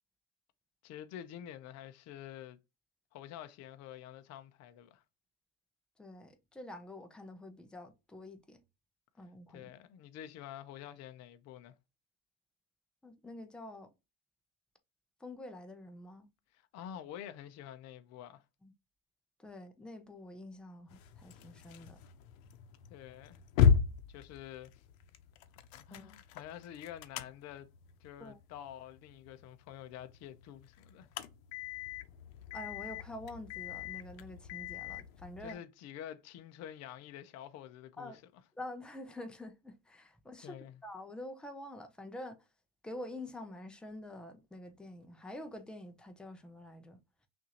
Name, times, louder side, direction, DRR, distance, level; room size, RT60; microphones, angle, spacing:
voice 1, 0.8-2.6 3.1-5.0 9.5-11.8 16.5-18.4 22.9-23.4 24.1-24.8 25.8-27.7 28.0-31.1 35.4-38.4 40.4-40.8, left 10 dB, 40° left, 0.6 m, -48 dB
voice 2, 6.0-8.6 9.2-9.7 13.0-13.9 15.2-16.3 18.6-18.7 19.4-22.0 25.9-26.1 28.2-28.4 32.5-35.6 38.0-38.2 38.6-42.4 42.8-47.0, left 1 dB, ahead, 0.4 m, -47 dB
sound 1, 20.9-35.5, left 7 dB, 85° left, 0.7 m, -36 dB
5.9 x 2.6 x 2.8 m
supercardioid pair, 140°, 40 cm